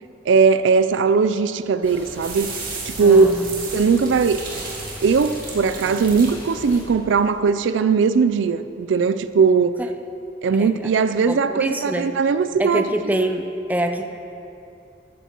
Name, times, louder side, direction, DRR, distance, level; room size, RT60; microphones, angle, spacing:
voice 1, 0.3-2.5 2.8-3.3 3.7-4.4 5.0-9.8 10.4-13.2, right 5 dB, 85° right, 0.4 m, -19 dB
sound 1, 1.8-6.8, equal, 10° left, 2.1 m, -38 dB
sound 2, 2.2-7.4, right 4 dB, 50° right, 2.2 m, -35 dB
voice 2, 3.0-3.4 10.5-10.9 11.3-12.1 12.6-14.0, right 1 dB, 10° right, 0.5 m, -25 dB
13.5 x 13.0 x 3.0 m
head